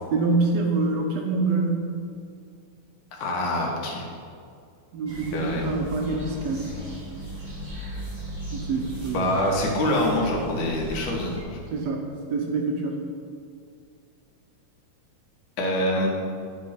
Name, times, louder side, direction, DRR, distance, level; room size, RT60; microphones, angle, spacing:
voice 1, 0.1-1.8 4.9-6.8 8.5-9.3 11.7-12.0 12.3-13.0, right 3 dB, 65° right, 1 dB, 1.9 m, -25 dB
voice 2, 3.1-4.1 5.3-5.7 9.1-11.6 15.6-16.1, left 1 dB, 80° left, -1 dB, 2.9 m, -25 dB
sound 1, 5.1-11.4, equal, 20° right, 1.5 m, -37 dB
10.0 x 5.3 x 5.8 m, 2.3 s
omnidirectional pair, 3.4 m